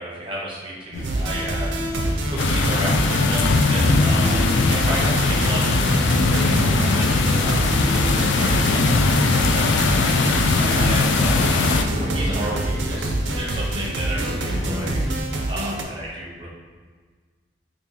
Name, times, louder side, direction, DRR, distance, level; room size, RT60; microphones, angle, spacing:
voice 1, 0.0-1.9 2.3-4.4 4.7-8.0 8.3-9.0 9.3-15.0 15.5-16.5, right 1 dB, 30° right, -5 dB, 0.7 m, -32 dB
sound 1, 0.9-15.2, equal, 45° left, 0.6 m, -29 dB
sound 2, 1.0-15.8, right 1 dB, 75° right, 0.4 m, -27 dB
sound 3, 2.4-11.8, left 3 dB, 80° left, 0.3 m, -20 dB
3.6 x 2.5 x 3.0 m, 1.5 s
head